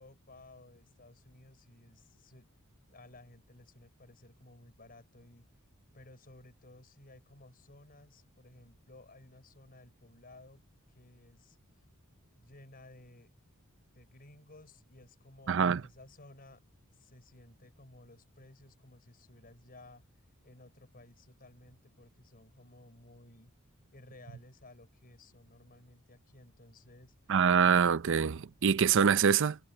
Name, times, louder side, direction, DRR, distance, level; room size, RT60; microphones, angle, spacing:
voice 1, 0.0-2.5 2.9-5.5 5.9-11.6 12.4-13.3 13.9-16.6 16.9-20.0 20.4-23.5 23.9-27.1, left 2 dB, 45° left, 5.3 m, -56 dB
voice 2, 15.5-15.8 27.3-29.6, right 7 dB, 60° right, 0.5 m, -25 dB
head